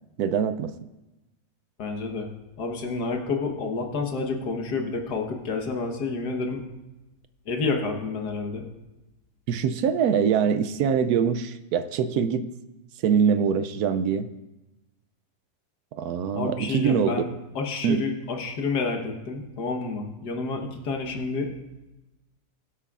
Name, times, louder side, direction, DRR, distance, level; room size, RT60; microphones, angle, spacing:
voice 1, 0.2-0.7 9.5-12.5 13.0-14.3 16.0-17.1 17.8-18.0, right 7 dB, 75° right, 12 dB, 1.1 m, -23 dB
voice 2, 1.8-2.3 2.6-6.6 7.5-8.7 16.4-17.3 17.6-21.5, left 4 dB, 80° left, 3 dB, 1.8 m, -29 dB
21.5 x 8.1 x 2.4 m, 1.0 s
omnidirectional pair, 1.7 m